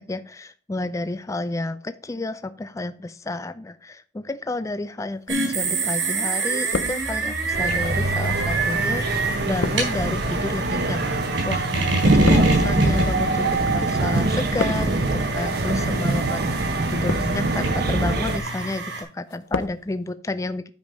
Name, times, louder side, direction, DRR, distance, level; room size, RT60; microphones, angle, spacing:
voice 1, 0.0-11.0 11.4-11.7 12.1-16.4 16.9-20.7, left 2 dB, 15° left, 11 dB, 0.4 m, -31 dB
sound 1, 5.3-19.0, right 3 dB, 90° right, 4.1 m, -27 dB
sound 2, 5.6-6.2 6.4-7.5 8.2-13.8 14.1-15.1 15.8-16.1 16.8-17.6 18.0-18.5 18.9-19.8 20.1-20.2, left 4 dB, 80° left, 0.6 m, -33 dB
sound 3, 7.5-18.4, right 2 dB, 55° right, 1.0 m, -23 dB
9.3 x 5.2 x 5.3 m, 0.40 s
head